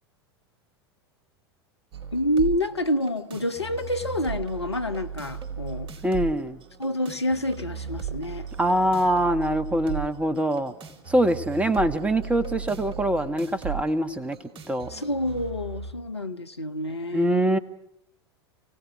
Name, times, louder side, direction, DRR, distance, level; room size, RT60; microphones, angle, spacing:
sound 1, 1.9-15.9, right 7 dB, 40° right, 4.4 m, -37 dB
voice 1, 2.1-5.9 6.8-8.5 14.9-17.5, left 1 dB, 90° left, 8 dB, 1.3 m, -28 dB
voice 2, 6.0-6.6 8.6-10.7 11.1-14.4 14.7-14.9 17.1-17.6, right 1 dB, 10° right, 12 dB, 1.7 m, -24 dB
30.0 x 18.0 x 6.1 m, 0.73 s
figure-of-eight pair, 85°, 14 cm